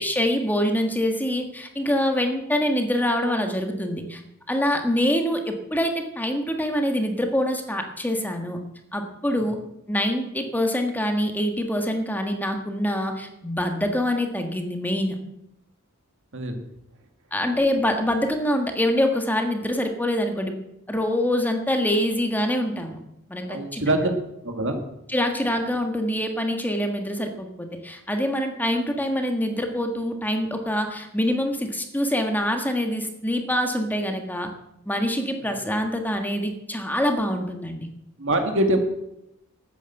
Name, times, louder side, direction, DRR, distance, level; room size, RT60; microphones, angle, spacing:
voice 1, 0.0-4.2 4.5-8.6 8.9-9.6 9.9-15.2 17.3-20.5 20.9-23.0 23.3-24.0 25.1-34.5 34.8-37.9, equal, 10° left, 4 dB, 1.6 m, -25 dB
voice 2, 23.5-24.1 24.4-24.7 35.4-35.6 38.2-38.8, right 1 dB, 60° right, 5 dB, 2.1 m, -24 dB
13.0 x 9.2 x 7.9 m, 0.83 s
head